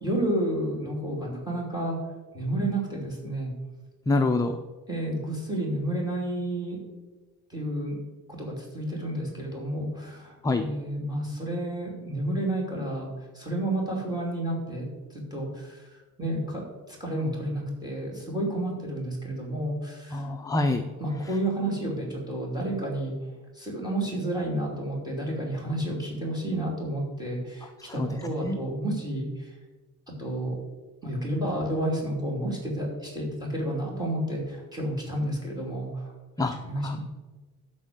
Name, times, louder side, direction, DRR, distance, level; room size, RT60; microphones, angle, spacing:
voice 1, 0.0-2.0 2.3-3.5 4.9-6.8 7.5-8.0 8.3-13.1 13.3-15.9 16.2-20.2 21.0-23.1 23.5-29.5 30.2-30.5 31.0-36.1 36.4-37.0, right 1 dB, 10° right, -1 dB, 2.8 m, -31 dB
voice 2, 4.1-4.6 10.4-10.6 20.1-20.8 27.9-28.1 28.4-28.6 36.4-36.5 36.8-37.0, left 2 dB, 10° left, 6 dB, 0.3 m, -25 dB
12.0 x 4.4 x 7.7 m, 1.2 s
cardioid pair, 175°, 36 cm